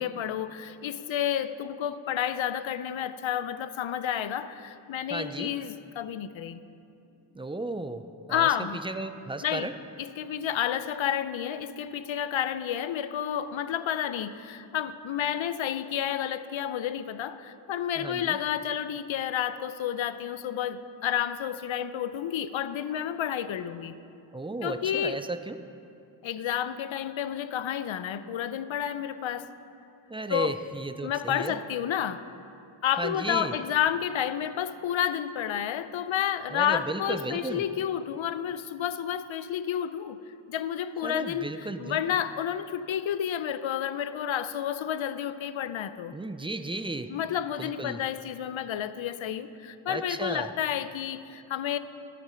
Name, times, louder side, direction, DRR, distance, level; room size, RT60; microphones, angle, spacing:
voice 1, 0.0-6.6 8.3-8.8 9.4-9.7 10.0-23.9 24.6-25.2 26.2-29.5 30.3-30.6 31.0-32.2 32.8-40.2 40.5-46.2 47.1-51.8, left 10 dB, 70° left, 13 dB, 0.6 m, -30 dB
voice 2, 5.1-5.5 7.3-8.5 8.8-9.7 18.0-18.4 24.3-25.6 30.1-31.6 33.0-33.5 36.5-37.6 41.0-42.0 46.1-47.1 47.6-48.0 49.9-50.5, right 2 dB, 10° right, 10 dB, 0.3 m, -34 dB
13.0 x 6.0 x 5.6 m, 2.7 s
wide cardioid pair, 70°, 50 cm